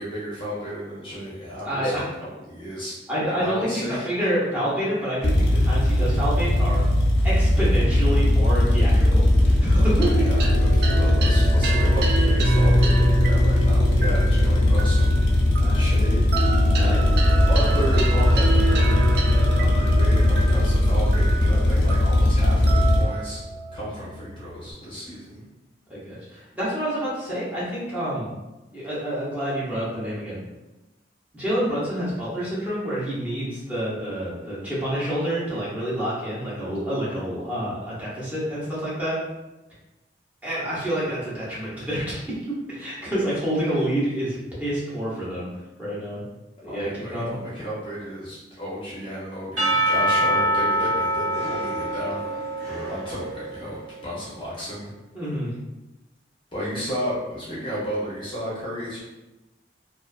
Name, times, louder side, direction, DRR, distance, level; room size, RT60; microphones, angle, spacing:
voice 1, 0.0-3.0 3.3-4.1 9.8-15.2 15.7-16.3 17.5-19.1 19.6-23.4 23.7-25.4 46.6-52.3 52.7-54.9 56.5-59.0, equal, 30° left, -7 dB, 0.6 m, -33 dB
voice 2, 1.6-2.0 3.1-6.8 7.2-10.1 15.6-15.8 16.8-17.0 25.9-28.3 28.7-30.4 31.3-39.2 40.4-46.2 46.6-47.3 55.1-55.5, equal, 10° right, -9 dB, 0.7 m, -28 dB
sound 1, 5.2-23.0, left 1 dB, 85° left, 0.5 m, -19 dB
sound 2, 10.0-24.7, right 1 dB, 60° right, 0.3 m, -26 dB
Percussion / Church bell, 49.6-53.7, right 1 dB, 90° right, 1.2 m, -24 dB
2.4 x 2.4 x 2.3 m, 1.0 s
head